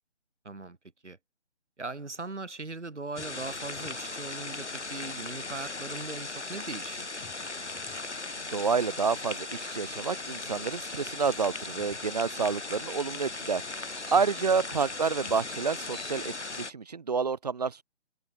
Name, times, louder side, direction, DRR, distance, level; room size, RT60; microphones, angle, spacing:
voice 1, 0.4-0.8 1.0-1.2 1.8-7.1 14.5-14.6, right 3 dB, 90° right, 2.7 m, -39 dB
sound 1, 3.2-16.7, left 3 dB, 80° left, 5.9 m, -38 dB
sound 2, 3.2-4.1 7.2-8.1 11.2-12.1 14.7-15.6, left 18 dB, 5° left, 0.7 m, -56 dB
voice 2, 8.5-17.8, right 5 dB, 35° right, 0.6 m, -29 dB
sound 3, 13.9-14.3 15.4-15.5 15.8-16.6, left 4 dB, 65° left, 4.7 m, -52 dB
figure-of-eight pair, 155°, 34 cm